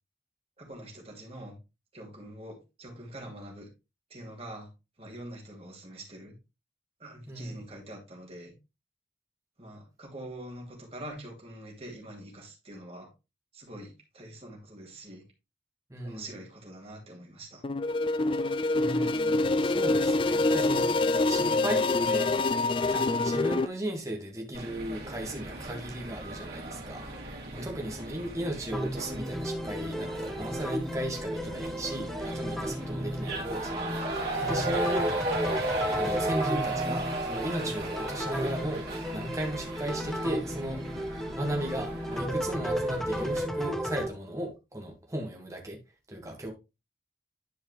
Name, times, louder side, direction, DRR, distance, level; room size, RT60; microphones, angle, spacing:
voice 1, 0.6-1.6 1.9-3.7 4.1-4.7 5.0-6.4 7.0-8.6 9.6-13.1 13.5-15.3 16.0-17.6 27.5-27.7 37.6-37.8, right 1 dB, 30° right, 2.5 m, -44 dB
voice 2, 7.3-7.7 15.9-16.2 18.7-22.3 22.8-35.1 36.0-45.8 46.1-46.5, right 1 dB, 15° right, 1.6 m, -36 dB
sound 1, 17.6-23.7, left 2 dB, 30° left, 0.3 m, -26 dB
sound 2, 24.5-43.4, right 2 dB, 55° right, 2.8 m, -36 dB
sound 3, 28.7-44.1, equal, ahead, 0.8 m, -34 dB
10.5 x 4.8 x 3.1 m
head